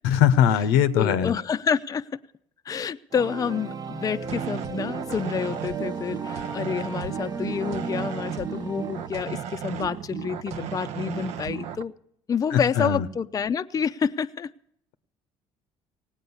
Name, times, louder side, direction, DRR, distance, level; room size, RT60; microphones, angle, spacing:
voice 1, 0.0-1.3 12.5-13.1, left 9 dB, 90° left, 12 dB, 0.8 m, -21 dB
voice 2, 1.0-2.2 2.7-11.9 12.3-14.5, left 7 dB, 30° left, 10 dB, 0.5 m, -28 dB
sound 1, 3.1-10.0, right 5 dB, 35° right, 0.9 m, -36 dB
sound 2, 4.2-11.8, right 9 dB, 70° right, 0.7 m, -35 dB
17.5 x 8.9 x 6.9 m, 0.70 s
supercardioid pair, 80°, 12 cm